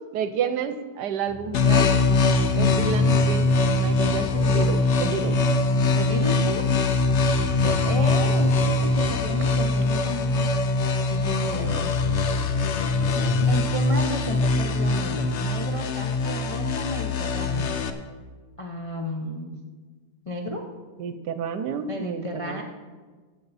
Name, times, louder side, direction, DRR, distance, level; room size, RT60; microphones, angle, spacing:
voice 1, 0.1-1.9 2.6-3.5 3.8-5.4 7.6-7.8 11.1-11.9 20.5-20.7 21.0-22.6, right 7 dB, 75° right, 11 dB, 1.3 m, -30 dB
sound 1, 1.3-9.8, left 1 dB, 5° left, 0.8 m, -37 dB
sound 2, 1.5-17.9, left 3 dB, 60° left, 0.8 m, -22 dB
voice 2, 5.9-6.6 7.8-10.5 13.5-17.8 18.6-19.6 20.3-20.6 21.9-22.6, left 1 dB, 40° left, 0 dB, 0.4 m, -33 dB
15.5 x 7.4 x 4.1 m, 1.4 s
omnidirectional pair, 1.8 m